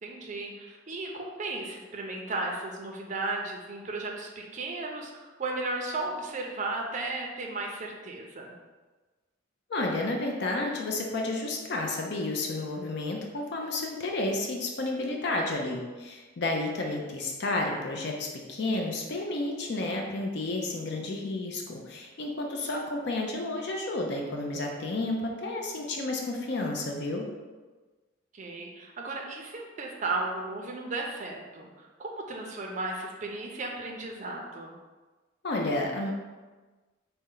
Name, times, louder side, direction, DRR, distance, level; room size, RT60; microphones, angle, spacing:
voice 1, 0.0-8.5 16.8-16.9 28.3-34.7, right 2 dB, 40° right, 0 dB, 0.4 m, -35 dB
voice 2, 9.7-27.3 35.4-36.1, left 2 dB, 55° left, 1 dB, 0.5 m, -31 dB
4.2 x 2.1 x 3.7 m, 1.3 s
head